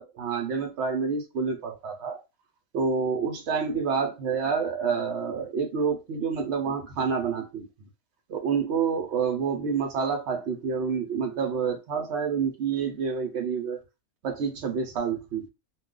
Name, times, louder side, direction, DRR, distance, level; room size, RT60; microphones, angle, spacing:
voice 1, 0.0-2.2 2.7-7.7 8.3-13.8 14.2-15.4, right 6 dB, 60° right, 0.9 m, -28 dB
2.3 x 2.3 x 3.6 m
omnidirectional pair, 1.5 m